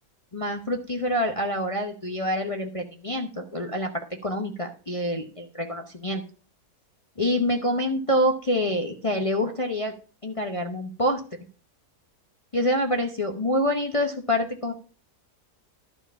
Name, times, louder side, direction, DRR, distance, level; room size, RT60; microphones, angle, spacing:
voice 1, 0.3-6.2 7.2-9.9 10.2-11.2 12.5-14.7, equal, 30° left, 2 dB, 0.7 m, -26 dB
11.5 x 4.5 x 7.1 m, 0.38 s
omnidirectional pair, 1.7 m